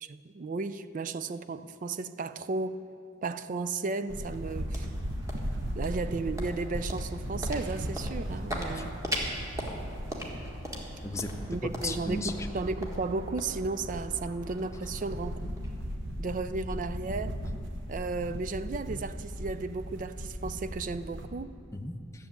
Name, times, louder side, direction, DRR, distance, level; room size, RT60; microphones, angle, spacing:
voice 1, 0.0-2.8 3.2-4.9 5.7-9.0 11.5-15.5 16.2-17.4 17.9-21.5, right 3 dB, 40° right, 12 dB, 0.4 m, -34 dB
sound 1, 4.1-16.2, equal, 15° right, 1.6 m, -41 dB
sound 2, 4.1-21.3, equal, 60° right, 1.0 m, -37 dB
voice 2, 11.0-12.5 21.7-22.3, left 2 dB, 15° left, 6 dB, 0.6 m, -36 dB
13.0 x 7.1 x 8.9 m, 2.3 s
head